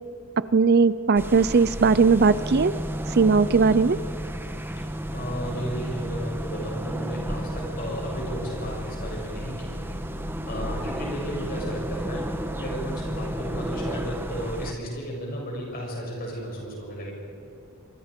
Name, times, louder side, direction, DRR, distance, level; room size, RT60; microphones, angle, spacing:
voice 1, 0.5-2.7 3.2-4.0, right 4 dB, 45° right, 15 dB, 0.5 m, -18 dB
sound 1, 1.2-14.7, right 1 dB, 10° right, 1.1 m, -32 dB
voice 2, 5.1-17.1, equal, 45° left, -1 dB, 7.7 m, -34 dB
27.5 x 25.0 x 5.2 m, 2.7 s
head